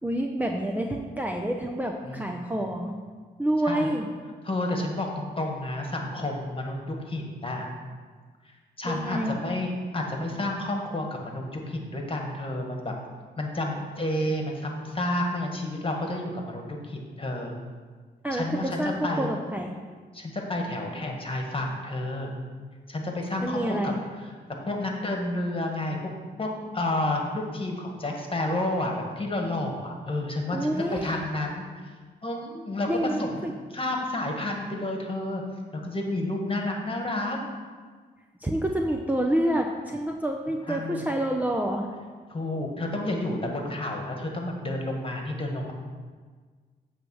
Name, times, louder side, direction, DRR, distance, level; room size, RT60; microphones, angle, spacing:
voice 1, 0.0-3.0 3.4-4.1 8.8-9.4 18.2-19.7 23.4-24.0 30.5-31.1 32.9-33.5 38.4-41.9, right 1 dB, 10° right, 1 dB, 0.7 m, -28 dB
voice 2, 4.4-7.7 8.8-12.9 13.4-17.5 18.3-19.3 20.1-22.3 22.9-23.9 24.2-24.3 24.6-26.0 26.4-31.9 32.2-32.9 33.2-33.4 33.7-35.4 35.7-37.4 40.7-41.1 42.3-45.7, left 1 dB, 30° left, 1 dB, 1.7 m, -30 dB
8.6 x 3.5 x 6.4 m, 1.5 s
supercardioid pair, 55°, 19 cm